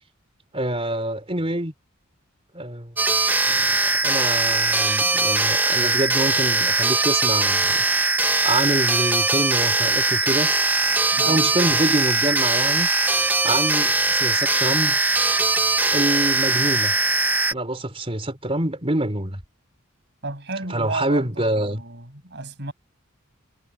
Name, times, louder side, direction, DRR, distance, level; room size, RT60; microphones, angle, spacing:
voice 1, 0.5-1.7 2.5-2.9 3.5-7.8 8.4-10.5 11.2-12.9 13.4-15.0 15.9-16.9 17.5-19.4 20.7-21.8, right 1 dB, 25° right, 3.5 m, -26 dB
sound 1, 3.0-17.5, right 3 dB, 10° right, 0.6 m, -21 dB
voice 2, 11.1-11.5 20.2-22.7, right 3 dB, 55° right, 7.7 m, -33 dB
head